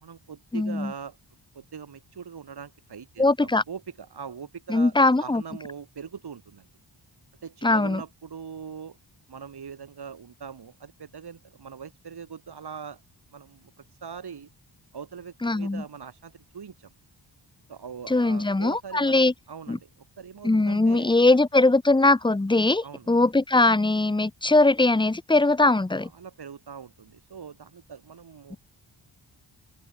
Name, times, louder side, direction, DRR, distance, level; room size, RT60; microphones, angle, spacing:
voice 1, 0.0-1.2 1.5-4.9 5.2-6.7 7.4-9.0 9.3-13.0 13.3-13.7 14.0-14.5 14.9-16.9 17.7-19.2 19.5-19.9 20.2-21.1 22.8-23.1 26.0-28.6, right 6 dB, 60° right, 2.2 m, -41 dB
voice 2, 0.5-0.9 3.2-3.6 4.7-5.4 7.6-8.0 15.4-15.8 18.1-19.3 19.7-19.8 20.4-26.1 28.5-28.6, left 2 dB, 10° left, 0.7 m, -21 dB
open air
wide cardioid pair, 85°, 44 cm